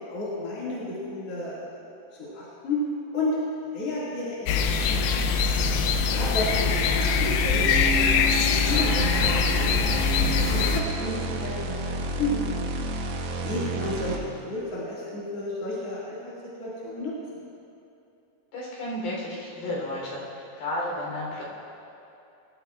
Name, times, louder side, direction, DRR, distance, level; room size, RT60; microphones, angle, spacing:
voice 1, 0.0-1.9 2.2-2.8 3.1-3.4 3.7-5.0 6.1-10.1 10.5-12.4 13.4-16.3 16.6-17.1, left 2 dB, 45° left, -8 dB, 2.7 m, -32 dB
sound 1, 4.5-10.8, left 5 dB, 90° left, 2.8 m, -23 dB
sound 2, 7.5-11.2 11.6-11.7, left 1 dB, 50° right, 3.5 m, -34 dB
sound 3, 8.7-14.4, right 2 dB, 70° right, 2.7 m, -31 dB
voice 2, 18.5-20.2 20.6-21.4, left 1 dB, 70° left, -4 dB, 5.5 m, -32 dB
22.5 x 13.5 x 2.4 m, 2.8 s
omnidirectional pair, 4.7 m